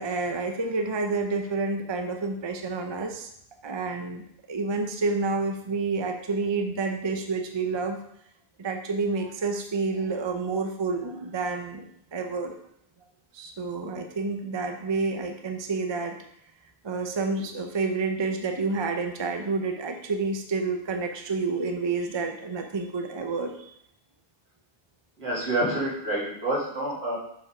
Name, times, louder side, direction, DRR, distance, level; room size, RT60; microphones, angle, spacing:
voice 1, 0.0-3.3 3.6-8.0 8.6-11.8 12.1-12.5 13.3-16.2 16.8-23.7, right 4 dB, 30° right, 4 dB, 0.7 m, -29 dB
voice 2, 25.2-27.2, right 1 dB, 85° right, -5 dB, 2.5 m, -28 dB
7.0 x 5.2 x 4.9 m, 0.72 s
omnidirectional pair, 1.0 m